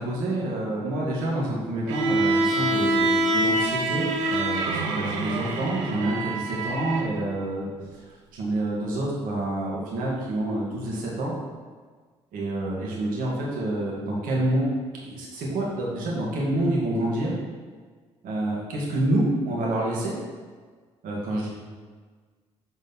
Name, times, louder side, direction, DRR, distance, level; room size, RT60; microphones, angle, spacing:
voice 1, 0.0-7.7 8.3-11.3 12.3-14.6 15.0-17.3 18.2-20.1 21.0-21.5, right 1 dB, 70° right, -4 dB, 1.9 m, -27 dB
Bowed string instrument, 1.9-7.1, right 2 dB, 85° right, 0.6 m, -25 dB
7.7 x 4.0 x 4.0 m, 1.5 s
hypercardioid pair, 50°, 15 cm